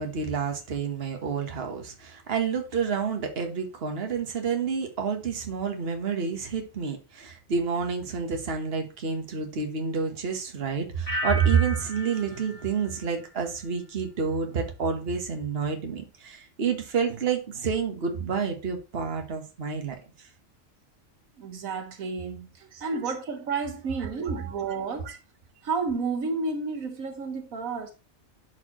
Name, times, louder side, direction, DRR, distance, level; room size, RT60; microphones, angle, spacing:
voice 1, 0.0-20.0 22.7-22.9, right 6 dB, 50° right, 1.5 m, -29 dB
sound 1, 11.1-13.9 14.2-14.7, equal, 25° left, 2.5 m, -36 dB
voice 2, 21.4-25.2 25.6-27.9, right 4 dB, 80° right, 1.5 m, -31 dB
10.5 x 4.6 x 3.0 m
omnidirectional pair, 1.4 m